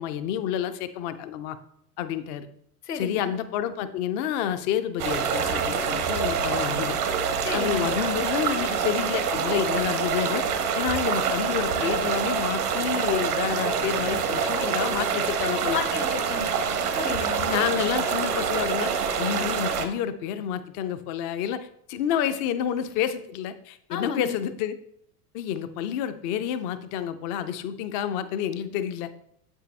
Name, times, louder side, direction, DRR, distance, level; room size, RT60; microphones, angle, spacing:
voice 1, 0.0-1.6 2.0-2.5 3.0-6.9 7.5-10.4 10.8-15.8 17.4-24.8 25.3-29.1, left 9 dB, 30° left, 11 dB, 0.4 m, -29 dB
voice 2, 2.8-3.3 7.4-7.9 15.7-16.5 17.0-17.5 23.9-24.4, left 5 dB, 75° left, 8 dB, 1.0 m, -32 dB
sound 1, 5.0-19.9, right 6 dB, 65° right, 1.0 m, -26 dB
8.0 x 6.0 x 2.2 m, 0.68 s
figure-of-eight pair, 80°, 48 cm